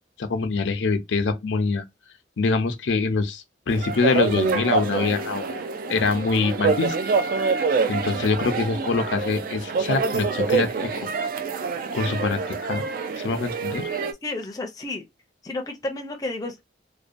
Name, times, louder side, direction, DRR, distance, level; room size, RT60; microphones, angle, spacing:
voice 1, 0.2-1.8 2.4-5.5 5.9-7.0 7.9-11.1 11.9-12.8 13.2-13.9, left 4 dB, 85° left, 0.5 m, -24 dB
sound 1, 3.7-14.1, right 4 dB, 50° right, 0.3 m, -26 dB
voice 2, 14.2-15.0 15.4-16.7, left 2 dB, 20° left, 0.5 m, -31 dB
2.6 x 2.2 x 2.5 m
head